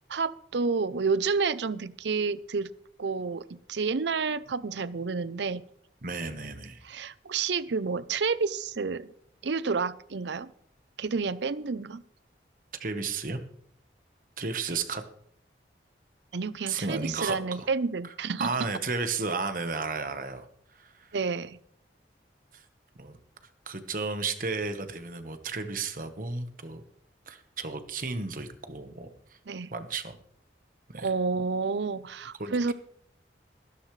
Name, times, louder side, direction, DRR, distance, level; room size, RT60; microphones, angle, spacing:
voice 1, 0.1-2.7 3.0-5.6 6.9-9.1 9.4-10.5 11.0-12.0 16.3-18.5 21.1-21.6 29.5-29.7 31.0-32.7, right 4 dB, 75° right, 17 dB, 0.6 m, -30 dB
voice 2, 6.0-6.8 12.7-13.4 14.4-15.0 16.7-17.7 18.0-18.1 18.4-21.2 22.5-22.7 22.9-23.2 23.4-26.8 27.3-29.4 29.7-30.2 30.9-31.1 32.4-32.7, right 4 dB, 50° right, 8 dB, 1.2 m, -33 dB
15.5 x 12.5 x 3.2 m, 0.66 s
head